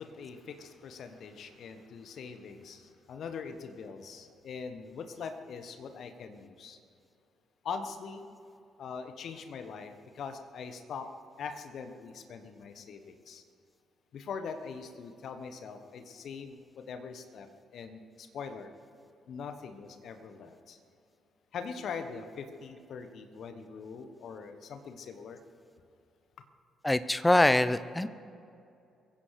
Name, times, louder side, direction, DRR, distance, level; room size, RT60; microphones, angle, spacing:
voice 1, 0.0-6.8 7.6-8.2 8.8-11.1 11.4-13.4 14.1-18.7 19.3-20.8 21.5-25.4, left 5 dB, 55° left, 8 dB, 1.1 m, -42 dB
voice 2, 26.8-28.1, left 1 dB, 15° left, 14 dB, 0.6 m, -24 dB
23.5 x 15.5 x 3.2 m, 2.6 s
figure-of-eight pair, 40°, 0 cm